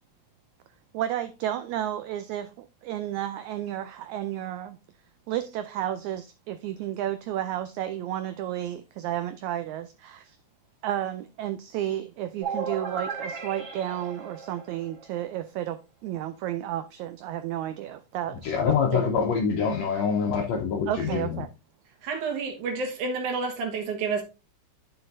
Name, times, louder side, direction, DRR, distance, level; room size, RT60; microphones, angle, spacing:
voice 1, 0.9-4.8 5.3-10.4 10.8-19.1 20.9-21.5, right 12 dB, 90° right, 1.6 m, -32 dB
sound 1, 12.4-15.2, right 5 dB, 40° right, 2.3 m, -35 dB
voice 2, 18.4-21.4, left 6 dB, 75° left, 1.7 m, -25 dB
voice 3, 22.0-24.2, right 4 dB, 65° right, 2.7 m, -29 dB
10.5 x 6.1 x 2.6 m
omnidirectional pair, 3.9 m